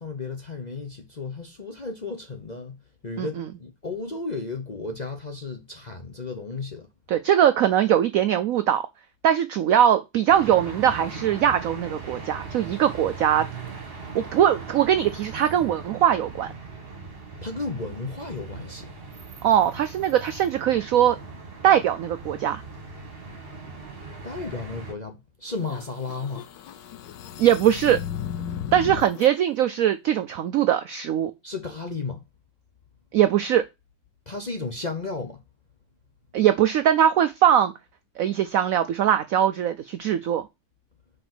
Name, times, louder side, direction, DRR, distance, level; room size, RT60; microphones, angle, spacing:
voice 1, 0.0-2.8 3.0-6.9 17.4-18.9 24.2-26.4 31.4-32.2 34.3-35.4, left 3 dB, 35° left, 0.7 m, -33 dB
voice 2, 3.2-3.5 7.1-8.8 9.2-13.4 14.1-16.5 19.4-21.2 21.6-22.6 27.4-28.0 28.7-31.3 33.1-33.7 36.3-37.7 38.2-40.4, right 10 dB, 75° right, 0.7 m, -21 dB
sound 1, 10.3-24.9, right 4 dB, 35° right, 1.5 m, -39 dB
sound 2, 25.6-29.3, left 9 dB, 75° left, 1.5 m, -35 dB
5.1 x 4.9 x 6.0 m
omnidirectional pair, 2.0 m